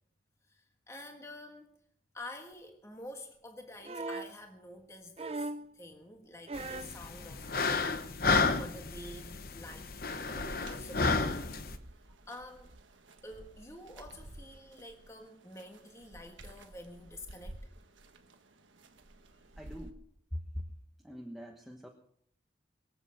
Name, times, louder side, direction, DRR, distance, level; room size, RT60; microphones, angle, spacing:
voice 1, 0.5-1.8 2.1-11.5 12.3-12.7 13.2-17.7, left 1 dB, 15° left, 4 dB, 1.4 m, -49 dB
sound 1, 3.8-4.4 5.2-5.7 6.5-7.0 8.2-8.3, right 2 dB, 30° right, 0.5 m, -38 dB
sound 2, 6.6-11.8, left 4 dB, 50° left, 1.0 m, -32 dB
Footsteps beside a river, 10.3-19.9, right 1 dB, 90° right, 1.4 m, -52 dB
voice 2, 19.3-20.1 20.3-20.7 21.0-21.9, equal, ahead, 1 dB, 1.2 m, -43 dB
22.5 x 8.1 x 6.3 m, 0.69 s
head